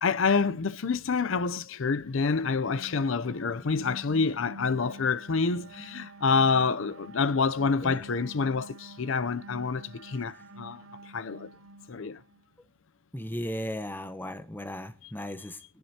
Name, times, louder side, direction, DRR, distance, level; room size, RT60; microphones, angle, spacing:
voice 1, 0.0-10.8 11.1-11.5 11.9-12.2 15.0-15.1, left 4 dB, 70° left, 0.6 m, -27 dB
sound 1, 1.9-12.5, right 1 dB, 75° right, 0.7 m, -48 dB
voice 2, 13.1-15.8, left 1 dB, 10° left, 0.9 m, -36 dB
23.5 x 10.5 x 2.8 m
head